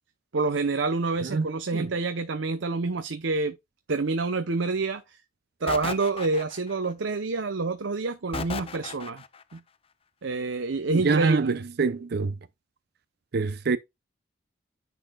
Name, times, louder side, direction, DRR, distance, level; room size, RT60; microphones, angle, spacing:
voice 1, 0.3-3.5 3.9-5.2 5.6-9.2 9.5-9.6 10.2-11.6, right 3 dB, 90° right, 0.7 m, -27 dB
sound 1, 5.7-6.9 8.3-9.4, left 5 dB, 30° left, 0.5 m, -35 dB
voice 2, 10.9-12.3 13.3-13.8, right 4 dB, 60° right, 0.5 m, -25 dB
10.0 x 4.1 x 2.3 m
head